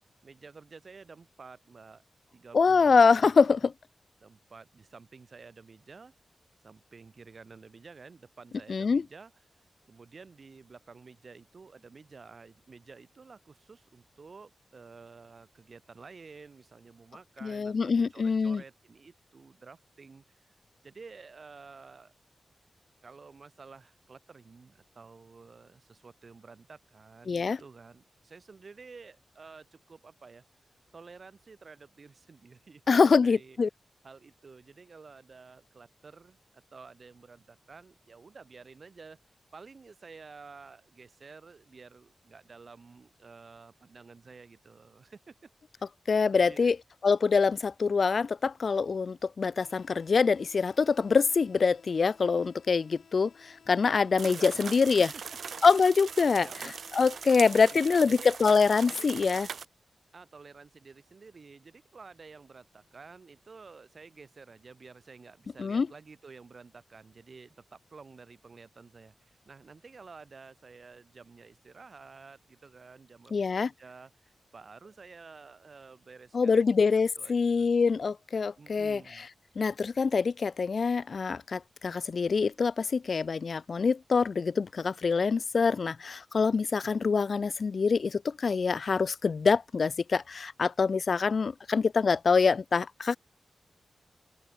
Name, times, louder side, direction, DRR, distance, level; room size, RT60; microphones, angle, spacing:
voice 1, 0.2-2.0 2.3-3.6 4.2-6.1 6.6-9.3 9.9-20.6 20.8-22.1 23.0-30.4 30.9-33.6 34.0-36.4 36.7-45.5 45.8-45.9 46.3-46.7 54.2-55.4 56.3-56.7 57.7-58.3 58.9-59.1 60.1-77.7 78.6-79.3 86.8-86.9, right 4 dB, 50° right, 3.7 m, -51 dB
voice 2, 2.5-3.7 8.7-9.0 17.4-18.6 27.3-27.6 32.9-33.7 46.1-46.8 47.0-55.1 55.6-59.5 65.6-65.9 73.3-73.7 76.3-79.0 79.6-93.2, left 5 dB, 60° left, 0.4 m, -25 dB
sound 1, 49.6-57.6, left 7 dB, 90° left, 3.5 m, -59 dB
sound 2, 54.2-59.7, right 6 dB, 75° right, 0.4 m, -40 dB
open air
wide cardioid pair, 95°, 0 cm